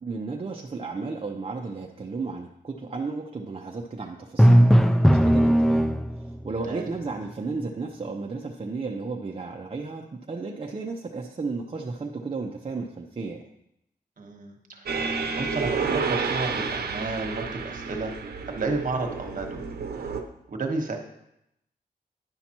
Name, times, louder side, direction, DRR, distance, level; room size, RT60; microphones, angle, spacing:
voice 1, 0.0-5.9 6.4-13.4, right 3 dB, 35° right, 0 dB, 0.6 m, -33 dB
Drum, 4.4-6.4, equal, ahead, 0.3 m, -17 dB
voice 2, 14.2-15.0 15.3-18.1 18.5-19.6 19.9-20.1 20.5-21.0, right 3 dB, 55° right, 3 dB, 1.2 m, -32 dB
sound 1, 14.9-20.2, right 5 dB, 80° right, 0.7 m, -30 dB
10.5 x 5.8 x 2.9 m, 0.80 s
wide cardioid pair, 90°, 16 cm